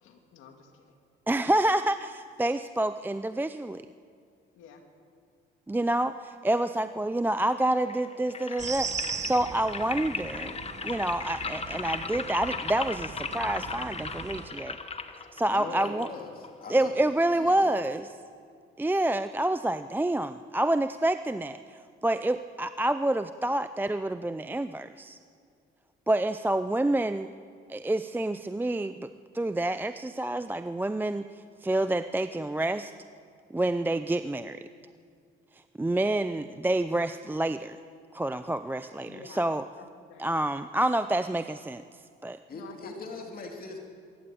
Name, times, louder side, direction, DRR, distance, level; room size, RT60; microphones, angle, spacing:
voice 1, 0.0-0.8 4.6-4.8 39.1-40.3 42.5-42.9, left 6 dB, 90° left, 4 dB, 2.2 m, -50 dB
voice 2, 1.3-3.8 5.7-10.6 10.8-14.8 15.3-16.1 16.7-18.1 18.8-25.2 26.1-27.3 27.7-32.9 33.5-34.6 35.8-37.8 38.1-39.7 40.2-41.8 42.2-42.4, right 1 dB, 10° right, 11 dB, 0.5 m, -28 dB
sound 1, 7.8-16.8, left 4 dB, 30° left, 1.1 m, -37 dB
sound 2, 8.6-14.5, right 5 dB, 35° right, 1.2 m, -39 dB
voice 3, 15.4-17.7 42.5-43.8, left 3 dB, 45° left, 1 dB, 2.8 m, -40 dB
23.0 x 13.5 x 8.7 m, 2.3 s
cardioid pair, 90°, 20 cm